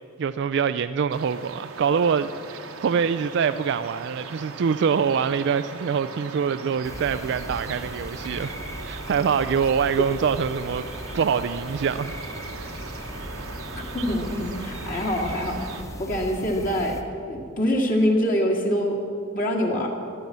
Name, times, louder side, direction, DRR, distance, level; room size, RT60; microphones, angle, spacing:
voice 1, 0.2-8.6 8.8-10.9 11.1-12.1 12.5-12.7, right 6 dB, 50° right, 11 dB, 0.3 m, -24 dB
sound 1, 1.1-15.8, right 4 dB, 75° right, 1.2 m, -39 dB
sound 2, 6.8-17.0, equal, 15° left, 0.8 m, -38 dB
voice 2, 13.7-15.6 16.0-17.0 17.3-19.0 19.3-19.9, equal, 40° left, 0 dB, 1.8 m, -24 dB
15.0 x 12.0 x 7.3 m, 2.5 s
head